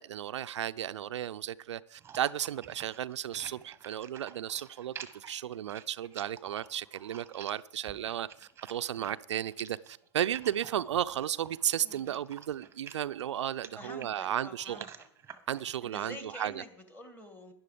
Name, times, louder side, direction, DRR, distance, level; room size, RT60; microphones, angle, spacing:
voice 1, 0.0-14.9 15.5-16.6, right 11 dB, 75° right, 0.4 m, -34 dB
sound 1, 2.0-15.7, right 7 dB, 15° right, 1.1 m, -50 dB
voice 2, 11.8-12.2 13.8-15.1 15.8-17.5, left 1 dB, 10° left, 2.2 m, -47 dB
11.5 x 10.5 x 5.0 m
hypercardioid pair, 110°, 15 cm